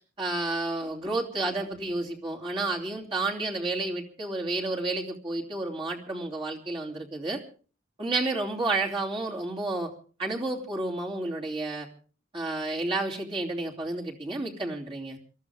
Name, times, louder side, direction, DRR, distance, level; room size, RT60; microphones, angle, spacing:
voice 1, 0.2-7.4 8.0-9.9 10.2-11.9 12.3-15.2, right 2 dB, 25° right, -2 dB, 2.9 m, -31 dB
27.0 x 13.5 x 3.5 m, 0.40 s
head